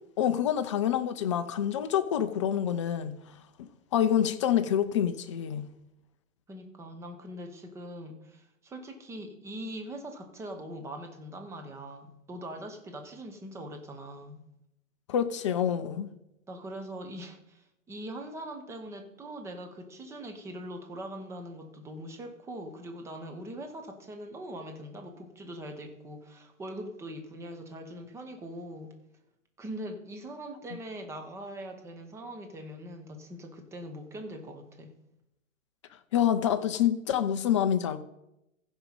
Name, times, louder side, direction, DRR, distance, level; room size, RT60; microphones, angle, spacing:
voice 1, 0.2-3.2 3.9-5.7 15.1-16.1 36.1-38.0, left 9 dB, 25° left, 0.5 m, -27 dB
voice 2, 6.5-14.4 16.5-28.9 29.6-34.9, right 1 dB, 5° right, 0.9 m, -42 dB
15.5 x 5.2 x 5.4 m
figure-of-eight pair, 115°, 40 cm